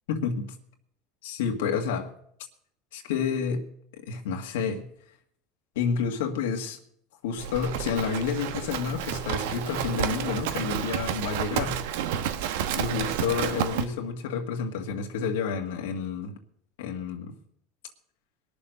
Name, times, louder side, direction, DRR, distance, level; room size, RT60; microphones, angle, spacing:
voice 1, 0.1-0.5 1.2-2.1 2.9-3.7 4.1-4.9 5.8-6.8 7.2-11.8 12.2-12.3 12.8-16.3 16.8-17.3, left 6 dB, 85° left, 1.9 m, -29 dB
Livestock farm animals working animals, 7.4-13.9, right 9 dB, 80° right, 1.1 m, -30 dB
21.0 x 7.1 x 6.7 m
supercardioid pair, 120°, 0 cm